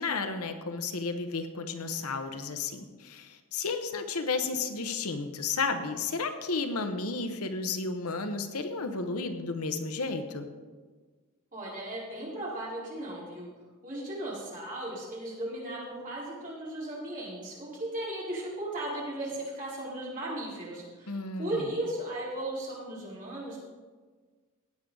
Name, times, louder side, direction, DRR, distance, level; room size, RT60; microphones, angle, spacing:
voice 1, 0.0-10.5 21.1-21.6, left 4 dB, 75° left, 7 dB, 0.9 m, -32 dB
voice 2, 11.5-13.5 13.8-23.6, right 1 dB, 40° right, -6 dB, 4.1 m, -36 dB
17.0 x 8.6 x 3.9 m, 1.4 s
head